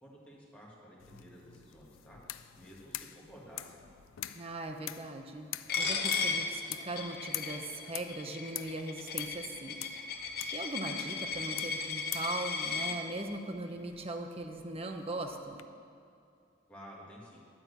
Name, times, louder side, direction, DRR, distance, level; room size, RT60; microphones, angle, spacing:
voice 1, 0.0-2.2 2.6-3.9 16.7-17.4, equal, 5° left, -6 dB, 1.9 m, -52 dB
sound 1, 1.0-15.6, left 14 dB, 80° left, 0.4 m, -47 dB
voice 2, 4.3-5.5 5.7-9.7 10.5-15.6, right 2 dB, 30° right, 5 dB, 0.7 m, -39 dB
Coin (dropping), 5.7-13.0, left 5 dB, 50° left, 0.8 m, -36 dB
11.0 x 4.5 x 7.9 m, 2.5 s
head